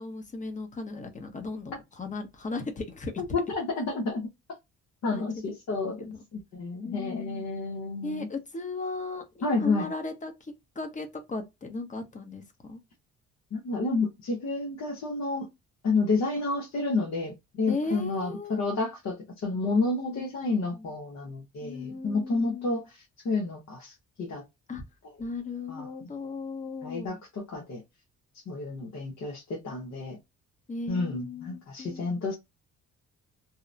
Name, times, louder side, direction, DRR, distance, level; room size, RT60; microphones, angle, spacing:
voice 1, 0.0-3.2 5.1-5.6 6.0-6.2 6.8-7.4 8.0-12.8 17.7-18.6 20.1-20.2 20.7-20.9 21.6-22.8 24.7-24.8 25.2-27.2 30.7-32.1, left 3 dB, 25° left, 0.8 m, -37 dB
voice 2, 3.3-4.3 5.0-8.3 9.4-9.9 13.5-15.5 15.8-24.4 25.7-26.1 26.8-27.8 28.5-30.2 30.9-32.4, left 3 dB, 60° left, 0.9 m, -30 dB
2.9 x 2.0 x 2.4 m
cardioid pair, 90°, 30 cm